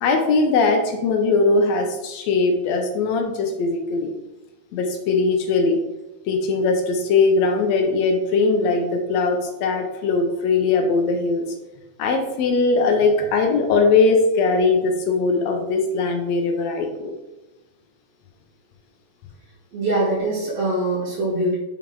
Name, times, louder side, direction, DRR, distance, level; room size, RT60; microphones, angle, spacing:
voice 1, 0.0-4.1 4.7-5.8 6.3-11.4 12.0-17.1, left 3 dB, 75° left, 4 dB, 1.9 m, -20 dB
voice 2, 19.7-21.5, right 1 dB, 60° right, -7 dB, 2.6 m, -23 dB
6.0 x 5.2 x 3.7 m, 0.98 s
omnidirectional pair, 3.4 m